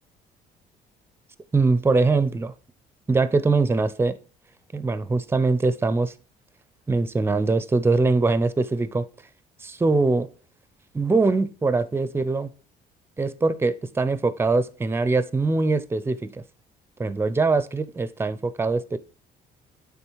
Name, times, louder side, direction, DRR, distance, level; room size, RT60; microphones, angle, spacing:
voice 1, 1.5-2.5 3.1-4.2 4.7-6.1 6.9-9.1 9.6-10.3 10.9-12.5 13.2-16.4 17.0-19.0, right 3 dB, 15° right, 0.5 m, -22 dB
9.0 x 3.7 x 4.6 m
cardioid pair, 110°, 17 cm